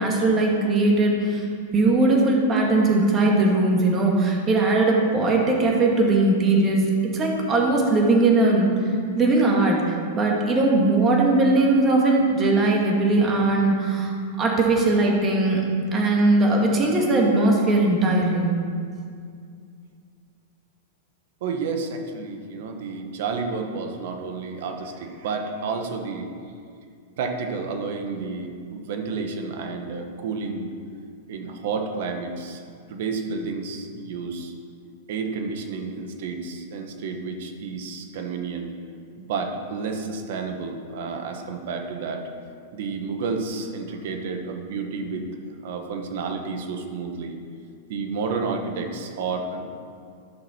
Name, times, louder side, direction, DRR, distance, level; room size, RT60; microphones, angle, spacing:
voice 1, 0.0-1.4 1.7-6.9 7.1-8.7 9.1-15.6 15.9-18.5, right 2 dB, 25° right, -1 dB, 1.8 m, -20 dB
voice 2, 21.4-26.3 27.2-30.7 31.3-32.6 32.9-34.5 35.1-38.7 39.2-42.3 42.7-45.3 45.6-47.4 47.9-49.6, right 4 dB, 65° right, 5 dB, 1.2 m, -30 dB
11.0 x 6.2 x 4.4 m, 2.2 s
hypercardioid pair, 135°, 0 cm